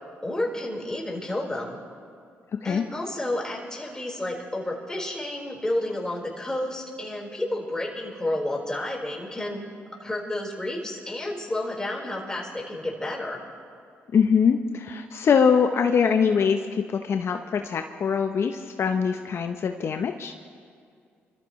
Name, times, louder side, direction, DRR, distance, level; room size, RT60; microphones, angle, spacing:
voice 1, 0.2-1.8 2.6-9.7 10.0-13.4, left 1 dB, 15° left, -2 dB, 4.3 m, -31 dB
voice 2, 14.1-20.3, left 6 dB, 60° left, 6 dB, 0.7 m, -23 dB
25.5 x 14.0 x 3.2 m, 2.3 s
supercardioid pair, 60°, 5 cm